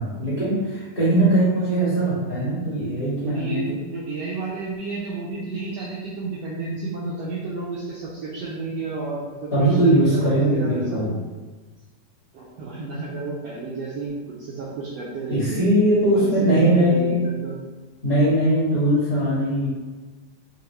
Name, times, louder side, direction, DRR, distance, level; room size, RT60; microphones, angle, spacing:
voice 1, 0.0-3.8 9.5-11.1 15.3-17.2 18.0-19.7, right 1 dB, 40° left, -9 dB, 1.5 m, -20 dB
voice 2, 3.2-11.0 12.3-15.6 16.1-17.6, right 3 dB, 90° right, -6 dB, 1.4 m, -31 dB
5.1 x 2.8 x 3.0 m, 1.3 s
omnidirectional pair, 3.6 m